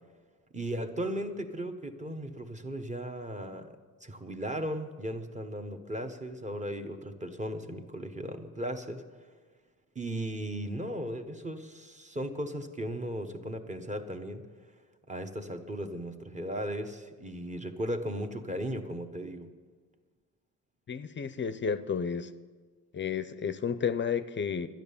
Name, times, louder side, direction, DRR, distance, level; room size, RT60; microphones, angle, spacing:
voice 1, 0.5-9.0 9.9-14.4 15.1-19.6, right 1 dB, 20° right, 6 dB, 1.1 m, -36 dB
voice 2, 20.9-22.3 22.9-24.7, left 6 dB, 35° left, 13 dB, 0.5 m, -31 dB
12.0 x 10.5 x 7.0 m, 1.5 s
cardioid pair, 115°, 34 cm